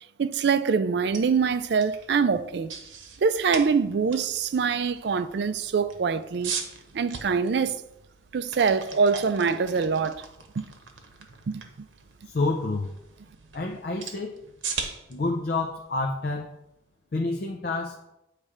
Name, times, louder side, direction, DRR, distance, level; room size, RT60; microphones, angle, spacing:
voice 1, 0.2-2.7 3.2-6.5 6.9-7.8 8.3-10.2 10.6-10.7 11.5-11.6, right 5 dB, 55° right, 0.3 m, -24 dB
sound 1, 0.9-16.9, right 5 dB, 75° right, 1.0 m, -40 dB
voice 2, 12.3-12.9 13.5-14.4 15.1-16.5 17.1-18.0, left 2 dB, 50° left, 0.5 m, -28 dB
8.6 x 3.2 x 4.9 m
head